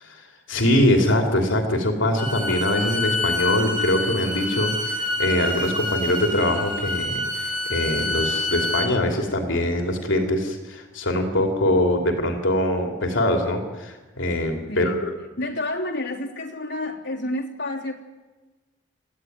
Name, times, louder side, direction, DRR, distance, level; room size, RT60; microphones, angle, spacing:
voice 1, 0.0-15.1, left 1 dB, 80° left, 3 dB, 3.0 m, -23 dB
Bowed string instrument, 2.2-8.9, left 2 dB, 25° right, 4.2 m, -27 dB
voice 2, 14.7-15.1 15.4-17.9, left 1 dB, 65° left, -1 dB, 3.2 m, -29 dB
30.0 x 14.0 x 9.5 m, 1.2 s
head